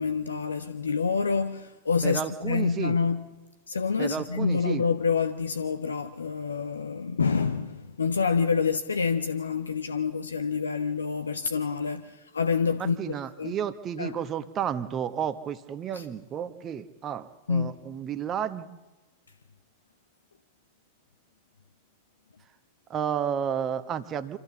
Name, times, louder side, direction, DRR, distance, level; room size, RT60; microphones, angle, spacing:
voice 1, 0.0-3.3 3.7-13.6 14.0-14.2 15.9-16.0 17.5-17.8, left 5 dB, 75° left, 0.7 m, -27 dB
voice 2, 2.0-3.0 4.0-4.8 12.8-18.7 22.9-24.4, right 8 dB, 30° right, 1.1 m, -32 dB
26.0 x 14.5 x 7.1 m
figure-of-eight pair, 90°, 0 cm